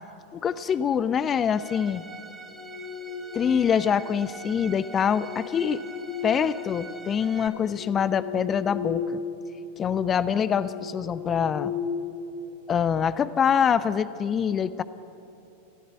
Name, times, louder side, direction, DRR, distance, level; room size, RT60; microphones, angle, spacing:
voice 1, 0.3-2.0 3.3-5.8 6.2-9.2 9.8-11.7 12.7-14.8, left 7 dB, 25° left, 16 dB, 0.7 m, -25 dB
Bowed string instrument, 1.5-7.5, right 4 dB, 10° right, 3.5 m, -44 dB
sound 1, 2.4-3.9 4.9-7.0 7.5-9.3 9.6-9.9 10.4-12.7, left 6 dB, 50° left, 3.6 m, -36 dB
27.5 x 16.5 x 8.8 m, 3.0 s
figure-of-eight pair, 90°, 0 cm